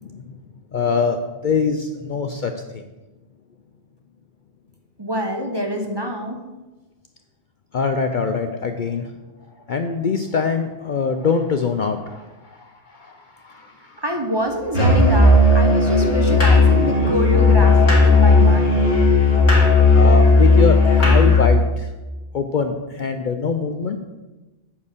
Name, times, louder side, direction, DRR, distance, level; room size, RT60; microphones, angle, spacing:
voice 1, 0.0-0.4 0.7-1.2 1.4-2.8 7.7-9.1 9.7-14.0 15.9-18.9 19.9-21.9 22.3-24.0, left 5 dB, 55° left, 6 dB, 0.6 m, -24 dB
voice 2, 5.0-6.4 14.0-18.9, equal, 25° right, 2 dB, 0.9 m, -25 dB
Musical instrument, 14.7-21.5, left 3 dB, 80° left, 2.3 m, -14 dB
8.5 x 4.7 x 6.8 m, 1.1 s
omnidirectional pair, 1.2 m